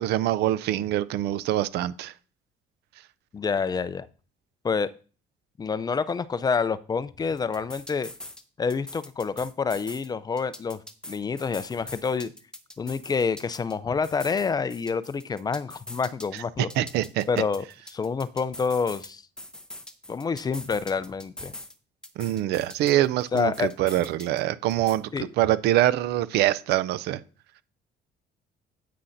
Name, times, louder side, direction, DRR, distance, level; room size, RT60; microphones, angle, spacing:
voice 1, 0.0-2.1 16.8-17.2 22.2-25.1 25.4-27.2, right 14 dB, 80° right, 0.5 m, -24 dB
voice 2, 3.3-4.1 4.6-4.9 5.6-8.1 8.6-10.8 11.1-12.3 12.8-16.7 17.3-17.7 17.9-19.2 20.1-21.5 23.3-23.7 25.1-25.3, left 5 dB, 25° left, 0.4 m, -27 dB
sound 1, 7.4-8.4 8.7-10.1 10.4-13.7 14.0-16.4 16.7-19.1 19.4-21.7 22.0-24.4 24.7-25.0, left 1 dB, 5° left, 0.8 m, -43 dB
9.7 x 8.4 x 2.6 m
cardioid pair, 110°, 17 cm